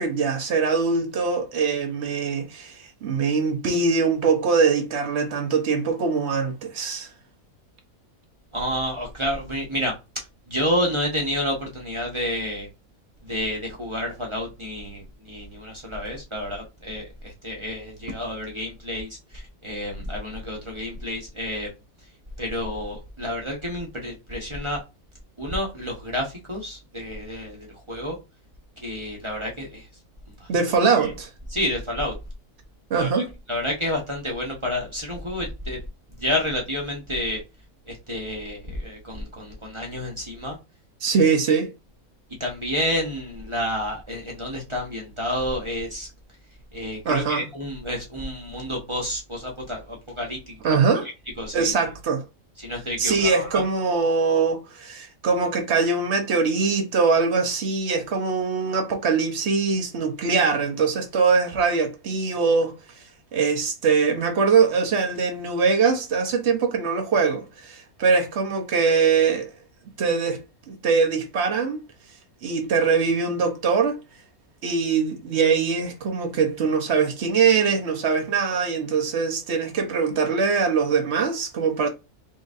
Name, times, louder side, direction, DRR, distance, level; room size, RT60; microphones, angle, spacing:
voice 1, 0.0-7.1 30.5-31.3 32.9-33.3 41.0-41.7 47.0-47.4 50.6-51.1 51.5-52.2 53.0-62.7 63.3-69.5 70.0-71.8 72.4-74.0 74.6-81.9, right 5 dB, 55° right, 1.0 m, -22 dB
voice 2, 8.5-9.9 10.5-12.7 13.2-21.7 22.4-24.8 25.4-27.6 27.9-28.2 28.8-29.8 31.0-31.1 31.5-32.1 33.0-33.2 33.5-35.8 36.2-37.4 37.9-40.6 41.1-41.2 42.4-46.1 46.7-50.6 51.4-51.7 52.6-53.6, left 1 dB, 20° right, 0.9 m, -29 dB
3.9 x 3.8 x 2.6 m
omnidirectional pair, 1.6 m